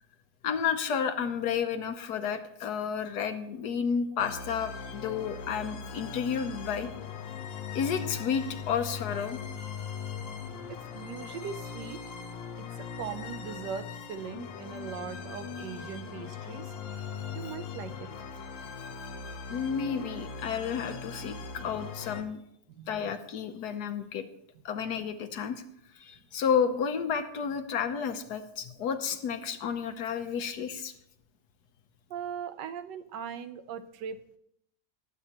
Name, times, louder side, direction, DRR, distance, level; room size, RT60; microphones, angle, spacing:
voice 1, 0.4-6.9 7.7-9.4 19.5-21.4 21.6-22.4 22.9-24.2 24.6-25.6 25.9-30.9, left 7 dB, 65° left, 8 dB, 1.2 m, -31 dB
sound 1, 4.2-22.2, left 6 dB, 85° left, 1.6 m, -40 dB
voice 2, 10.7-12.0 12.6-16.7 17.3-18.1 21.6-21.8 22.7-23.1 32.1-34.4, right 7 dB, 75° right, 11 dB, 1.3 m, -40 dB
19.5 x 8.2 x 2.9 m, 0.75 s
omnidirectional pair, 2.0 m